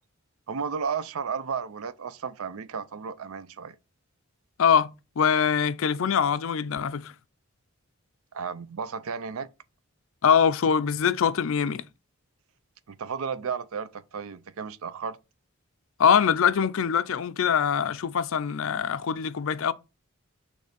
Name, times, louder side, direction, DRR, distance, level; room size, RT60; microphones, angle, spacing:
voice 1, 0.5-3.8 8.3-9.5 12.9-15.2, right 6 dB, 80° right, 0.5 m, -33 dB
voice 2, 4.6-7.1 10.2-11.8 16.0-19.7, left 7 dB, 65° left, 0.4 m, -23 dB
6.4 x 3.3 x 5.1 m
head